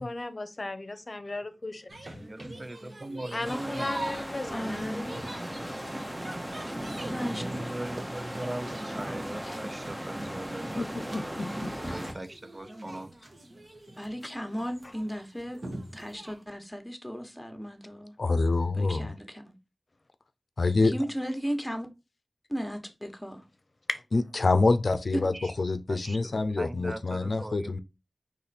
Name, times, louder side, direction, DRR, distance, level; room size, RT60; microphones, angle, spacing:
voice 1, 0.0-1.8 2.1-2.2 3.3-5.1 5.6-5.7 9.5-9.6 11.9-12.0 23.9-24.0, left 2 dB, 50° left, 0.7 m, -35 dB
sound 1, 1.9-16.4, right 1 dB, 55° right, 1.2 m, -43 dB
voice 2, 2.2-4.2 7.2-11.5 11.8-13.1 25.3-25.5 25.9-27.8, right 1 dB, 35° right, 0.4 m, -40 dB
sound 2, 3.4-12.1, equal, 15° right, 0.8 m, -37 dB
voice 3, 4.5-5.0 7.0-7.4 14.0-15.6 15.9-18.1 18.7-19.4 20.8-21.9 22.5-23.4, equal, 5° left, 1.1 m, -35 dB
voice 4, 10.8-11.7 18.2-19.1 20.6-20.9 24.1-27.8, left 3 dB, 85° left, 0.4 m, -26 dB
4.1 x 3.1 x 4.1 m
wide cardioid pair, 65°, 0 cm